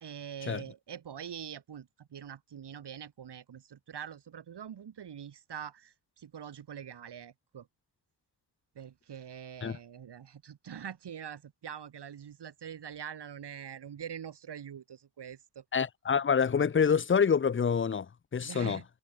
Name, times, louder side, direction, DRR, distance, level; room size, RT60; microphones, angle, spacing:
voice 1, 0.0-7.7 8.8-15.6 18.4-18.8, right 8 dB, 85° right, 1.8 m, -44 dB
voice 2, 15.7-18.8, left 6 dB, 30° left, 0.6 m, -27 dB
wide cardioid pair, 120°, 40 cm